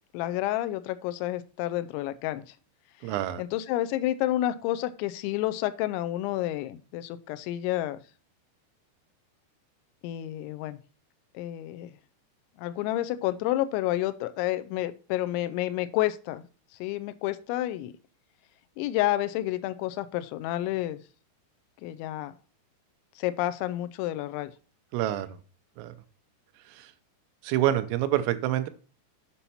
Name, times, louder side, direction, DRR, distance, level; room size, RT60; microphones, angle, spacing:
voice 1, 0.1-2.5 3.0-8.0 10.0-10.8 11.3-12.0 12.6-16.4 16.8-17.9 18.8-21.0 21.8-22.3 23.2-24.5, left 14 dB, 85° left, 12 dB, 2.7 m, -30 dB
voice 2, 3.0-3.4 24.9-25.4 25.8-25.9 26.7-26.9 27.4-28.7, right 13 dB, 85° right, 10 dB, 3.4 m, -27 dB
8.4 x 5.5 x 4.2 m, 0.37 s
omnidirectional pair, 5.8 m